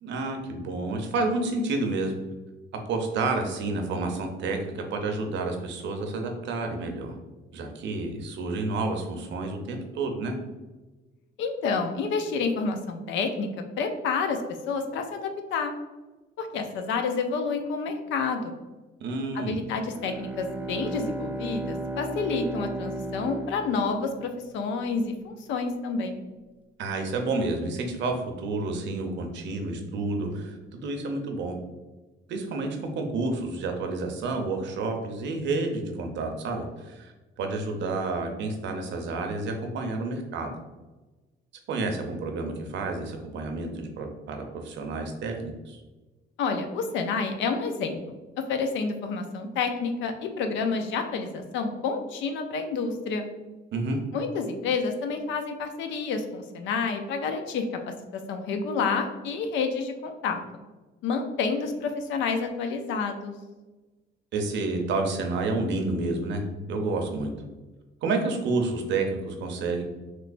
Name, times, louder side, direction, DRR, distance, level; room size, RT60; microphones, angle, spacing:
voice 1, 0.0-2.2 2.9-7.1 7.5-10.3 19.0-19.6 26.8-31.6 32.3-37.1 37.4-40.5 41.7-45.8 53.7-54.0 64.3-66.4 66.7-67.3 68.0-69.8, right 3 dB, 75° right, 4 dB, 0.6 m, -30 dB
voice 2, 11.4-13.5 13.8-14.4 14.7-15.7 16.4-18.5 19.3-26.2 46.4-48.0 48.5-53.3 54.1-57.6 58.3-60.4 61.0-63.3, left 4 dB, 80° left, 6 dB, 0.5 m, -29 dB
Bowed string instrument, 19.9-24.5, right 2 dB, 10° right, 0.4 m, -35 dB
3.2 x 3.1 x 2.5 m, 1.2 s
cardioid pair, 80°, 19 cm